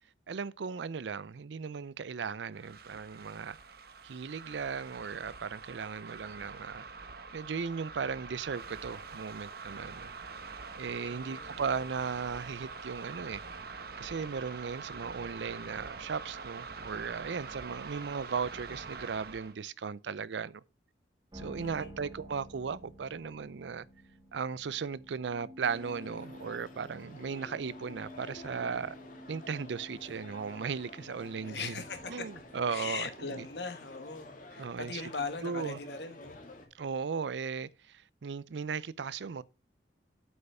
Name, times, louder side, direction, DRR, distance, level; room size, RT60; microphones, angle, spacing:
voice 1, 0.3-3.6 4.0-6.8 7.3-10.1 10.8-13.4 14.0-20.6 21.3-23.9 24.3-29.0 29.3-31.8 32.1-33.4 34.6-35.0 35.4-35.8 36.7-39.4, right 5 dB, 90° right, 0.5 m, -37 dB
sound 1, 2.5-19.5, right 4 dB, 60° right, 1.0 m, -45 dB
voice 2, 11.0-11.5 21.6-22.0 31.4-32.3 32.7-36.4, left 4 dB, 70° left, 1.2 m, -40 dB
sound 2, 21.3-33.6, equal, 25° right, 1.9 m, -52 dB
sound 3, 25.6-36.7, left 1 dB, 50° left, 2.1 m, -50 dB
7.8 x 5.5 x 5.4 m
head